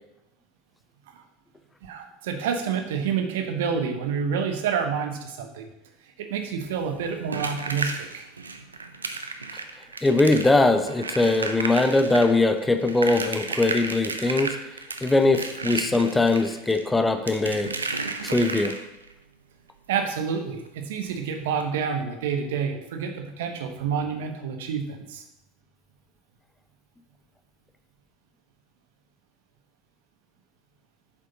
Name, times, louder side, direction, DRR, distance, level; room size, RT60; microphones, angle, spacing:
voice 1, 1.8-5.7 6.0-8.3 19.9-25.2, right 6 dB, 65° right, 6 dB, 1.0 m, -28 dB
sound 1, 6.6-19.1 20.6-20.7 21.0-21.1 21.5-21.6, right 3 dB, 85° right, 0.6 m, -33 dB
voice 2, 10.0-14.6 15.0-17.7 18.2-18.8, left 2 dB, 10° left, 8 dB, 0.7 m, -21 dB
7.6 x 6.5 x 4.1 m, 0.88 s
figure-of-eight pair, 75°, 0 cm